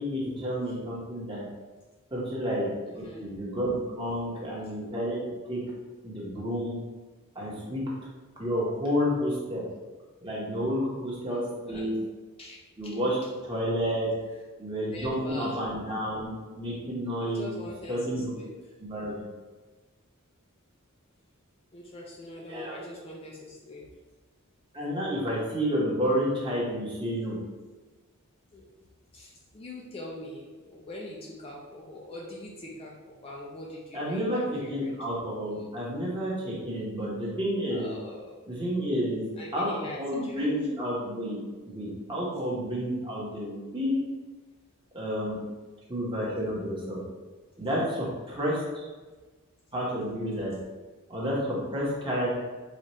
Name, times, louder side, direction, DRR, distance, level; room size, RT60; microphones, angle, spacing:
voice 1, 0.0-1.4 2.1-2.7 2.9-5.2 5.5-5.6 6.0-6.8 7.3-7.8 8.4-9.6 10.2-12.0 12.8-13.2 13.4-14.1 14.6-17.6 17.9-18.3 18.8-19.2 22.5-22.8 24.7-27.4 33.9-37.9 38.5-39.7 40.0-41.4 41.6-44.0 44.9-45.4 45.9-47.0 47.6-48.9 49.7-50.5 51.1-52.3, equal, 20° right, -6 dB, 1.0 m, -30 dB
voice 2, 2.8-3.3 10.7-11.4 11.7-11.9 12.4-13.3 14.8-15.7 17.2-18.6 21.7-23.9 28.5-28.9 29.1-34.9 35.6-35.7 37.7-38.4 39.3-40.5, left 1 dB, 25° left, -3 dB, 0.4 m, -43 dB
4.2 x 2.3 x 3.0 m, 1.3 s
head